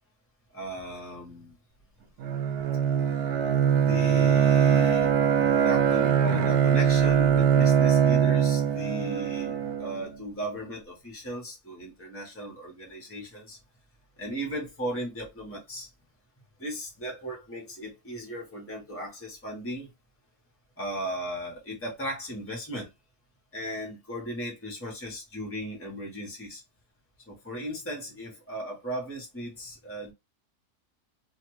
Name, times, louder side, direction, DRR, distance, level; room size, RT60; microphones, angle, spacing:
voice 1, 0.5-1.5 3.8-13.6 14.2-15.9 16.6-19.9 20.8-22.9 23.5-26.6 27.3-30.1, equal, 10° left, 1.0 m, -36 dB
Bowed string instrument, 2.2-10.0, right 8 dB, 80° right, 1.1 m, -22 dB
2.8 x 2.5 x 3.0 m
omnidirectional pair, 1.6 m